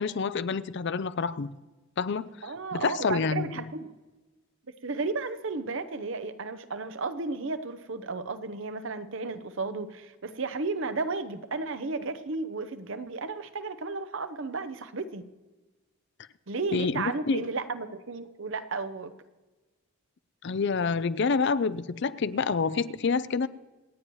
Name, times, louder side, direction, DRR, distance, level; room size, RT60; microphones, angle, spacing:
voice 1, 0.0-1.5 2.0-3.5 16.7-17.4 20.4-23.5, left 5 dB, 50° left, 0.4 m, -28 dB
voice 2, 2.4-3.9 4.8-15.2 16.5-19.1, right 3 dB, 60° right, 0.7 m, -33 dB
27.0 x 9.2 x 3.1 m
head